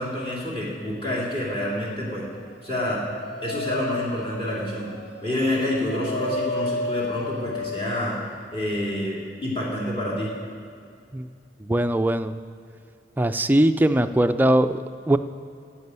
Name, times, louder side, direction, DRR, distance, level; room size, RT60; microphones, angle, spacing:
voice 1, 0.0-2.2 2.6-3.0 3.4-4.9 5.2-8.2 8.5-10.3, left 1 dB, 30° left, -5 dB, 2.7 m, -28 dB
Dog, 2.7-8.3, left 3 dB, 70° left, 0.9 m, -32 dB
voice 2, 11.6-12.4 13.2-15.2, right 1 dB, 10° right, 8 dB, 0.3 m, -21 dB
11.0 x 6.8 x 9.4 m, 2.4 s
head